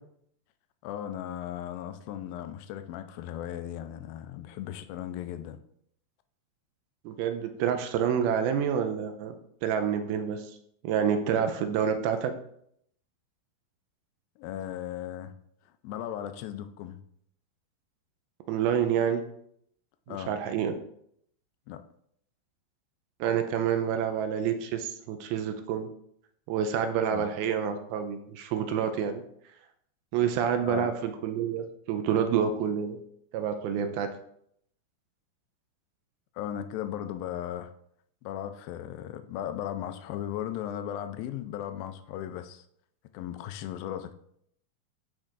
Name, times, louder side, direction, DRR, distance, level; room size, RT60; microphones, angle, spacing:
voice 1, 0.8-5.6 14.4-15.3 15.8-17.0 20.1-20.4 21.7-21.8 27.1-27.3 30.7-30.9 36.4-37.7 38.2-42.7 43.1-44.1, left 11 dB, 80° left, 2.2 m, -36 dB
voice 2, 7.1-9.4 9.6-10.5 10.8-12.3 18.5-19.2 20.1-20.7 23.2-25.9 26.5-29.2 30.1-33.0 33.3-34.1, right 8 dB, 85° right, 2.5 m, -28 dB
12.5 x 4.5 x 2.5 m
omnidirectional pair, 4.4 m